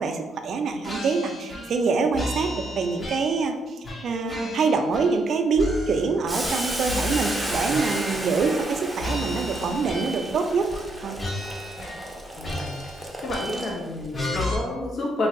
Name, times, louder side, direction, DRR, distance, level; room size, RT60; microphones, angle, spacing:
voice 1, 0.0-10.7 11.0-11.2, right 4 dB, 60° right, 5 dB, 0.3 m, -25 dB
sound 1, 0.8-1.8 2.1-3.5 3.8-5.3 5.5-8.7 9.0-10.4 10.7-10.9 11.2-12.1 12.4-13.8 14.1-14.5, left 1 dB, 30° left, 0.8 m, -33 dB
Boiling, 6.3-14.1, right 1 dB, 10° right, 0.5 m, -33 dB
voice 2, 12.4-12.7 13.2-15.3, left 2 dB, 55° left, -1 dB, 0.5 m, -29 dB
3.0 x 2.6 x 2.5 m, 1.2 s
cardioid pair, 90°, 0 cm